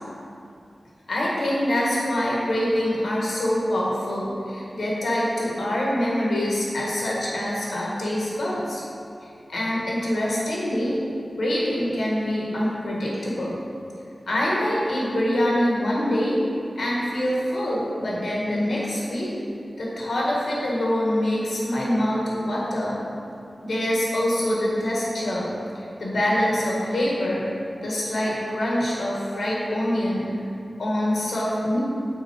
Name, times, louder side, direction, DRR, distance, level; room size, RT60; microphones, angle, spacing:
voice 1, 1.1-8.8 9.5-10.9 11.4-13.6 14.3-16.4 16.8-19.3 19.8-23.0 23.6-25.5 25.7-27.4 27.7-30.3 30.8-31.8, left 1 dB, 90° left, -5 dB, 1.5 m, -25 dB
6.3 x 4.4 x 4.8 m, 2.6 s
wide cardioid pair, 85°, 0 cm